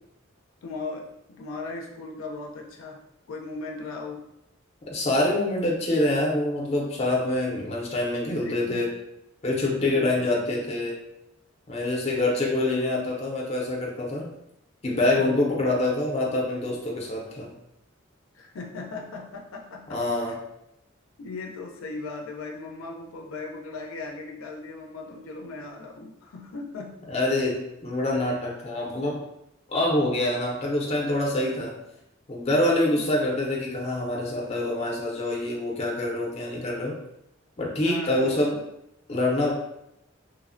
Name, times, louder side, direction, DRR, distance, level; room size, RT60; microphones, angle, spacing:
voice 1, 0.6-3.0 3.3-4.2 8.3-8.9 9.8-10.3 15.2-15.7 18.3-20.0 21.2-27.0 32.9-33.2 37.8-38.5, left 3 dB, 85° left, 0 dB, 0.4 m, -38 dB
voice 2, 4.9-8.9 9.4-10.9 11.7-14.3 14.8-17.5 19.9-20.4 27.1-29.2 29.7-31.8 32.3-36.9 37.6-38.6 39.1-39.5, left 1 dB, 30° left, -2 dB, 0.5 m, -25 dB
3.0 x 2.0 x 2.5 m, 0.84 s
head